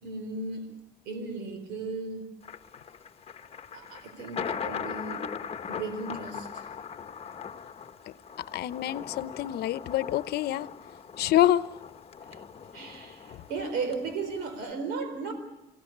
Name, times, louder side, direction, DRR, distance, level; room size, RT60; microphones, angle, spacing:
voice 1, 0.0-0.7 1.1-2.2 3.7-5.3 5.7-6.6 12.2-12.4 12.7-15.3, right 4 dB, 90° right, 7 dB, 4.3 m, -35 dB
Thunder, 2.4-14.7, left 7 dB, 35° left, 1.4 m, -40 dB
voice 2, 8.5-10.7 11.2-11.6 13.3-13.4, left 13 dB, 70° left, 14 dB, 0.9 m, -26 dB
28.5 x 18.0 x 8.7 m, 0.93 s
cardioid pair, 110°, 17 cm